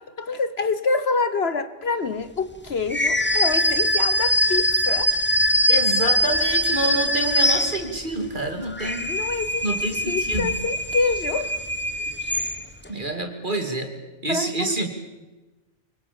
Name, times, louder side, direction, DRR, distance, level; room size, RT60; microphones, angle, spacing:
voice 1, 0.0-5.1 9.0-9.7 10.1-11.6 14.3-14.7, left 4 dB, 55° left, 13 dB, 1.3 m, -26 dB
sound 1, 2.9-8.2 8.6-12.9, equal, 10° left, 1.1 m, -22 dB
voice 2, 5.7-9.0 9.6-10.5 12.9-13.9 14.2-14.9, right 2 dB, 40° right, 4 dB, 3.1 m, -27 dB
25.5 x 23.0 x 7.1 m, 1.1 s
omnidirectional pair, 1.3 m